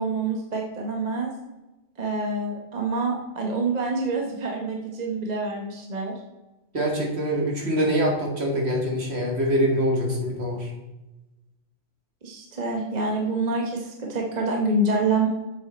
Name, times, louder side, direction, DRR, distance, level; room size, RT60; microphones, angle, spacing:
voice 1, 0.0-1.3 2.0-6.1 12.2-15.3, right 3 dB, 35° right, 0 dB, 1.1 m, -26 dB
voice 2, 6.7-10.7, equal, 55° right, 0 dB, 2.0 m, -24 dB
7.4 x 6.4 x 4.3 m, 1.0 s
omnidirectional pair, 1.3 m